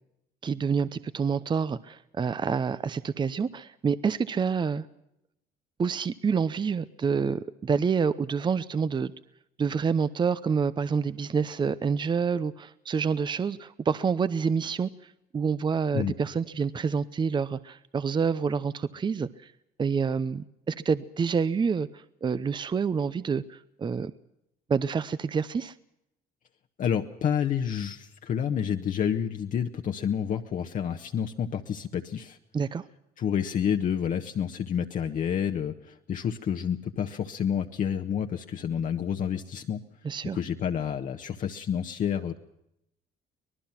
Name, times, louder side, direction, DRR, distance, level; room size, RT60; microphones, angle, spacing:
voice 1, 0.4-4.9 5.8-9.1 9.6-19.5 19.8-24.1 24.7-25.7 32.5-32.9 40.0-40.4, right 6 dB, 25° right, 15 dB, 0.7 m, -28 dB
voice 2, 26.8-32.4 33.2-39.8 40.3-42.3, left 8 dB, 50° left, 4 dB, 1.2 m, -29 dB
25.0 x 19.0 x 5.9 m, 0.82 s
cardioid pair, 110°, 17 cm